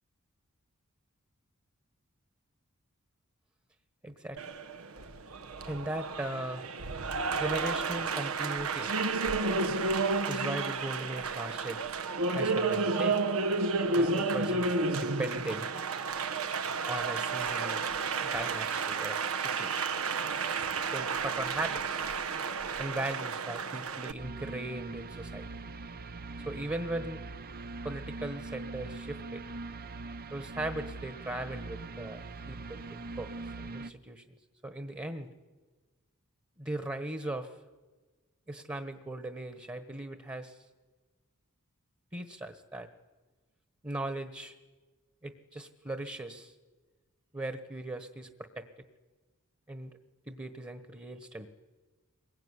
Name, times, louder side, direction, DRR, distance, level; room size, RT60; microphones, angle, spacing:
voice 1, 4.0-4.4 5.6-6.6 7.3-8.9 10.3-11.8 12.3-13.2 13.9-15.7 16.8-17.9 18.2-19.8 20.9-22.0 22.8-25.5 26.4-27.2 27.8-29.4 30.3-33.3 33.6-34.4 34.6-35.3 36.6-37.6 38.5-40.6 42.1-42.9 43.8-44.5 45.2-46.5 47.3-48.7 49.7-49.9 50.3-51.5, right 1 dB, 20° right, 8 dB, 1.4 m, -38 dB
Applause, 4.4-24.1, right 4 dB, 80° right, 1.3 m, -31 dB
sound 1, 24.2-33.9, right 3 dB, 45° right, 0.8 m, -42 dB
25.0 x 22.0 x 9.9 m, 1.3 s
head